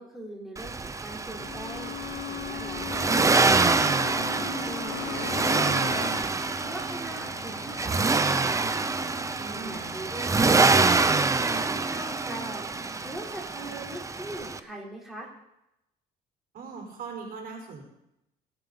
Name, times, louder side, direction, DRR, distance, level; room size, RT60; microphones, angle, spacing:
voice 1, 0.0-3.8 4.4-6.2 6.6-8.6 9.5-12.7 13.0-15.3, right 1 dB, ahead, -4 dB, 3.7 m, -41 dB
Accelerating revving vroom, 0.6-14.6, right 3 dB, 20° right, 0.8 m, -26 dB
Bowed string instrument, 1.4-6.2, left 14 dB, 75° left, 1.3 m, -39 dB
sound 1, 4.9-10.9, left 6 dB, 90° left, 2.1 m, -42 dB
voice 2, 9.4-10.3 16.5-17.8, right 4 dB, 60° right, 1 dB, 4.9 m, -40 dB
24.5 x 8.7 x 4.0 m, 0.86 s
cardioid pair, 110°, 17 cm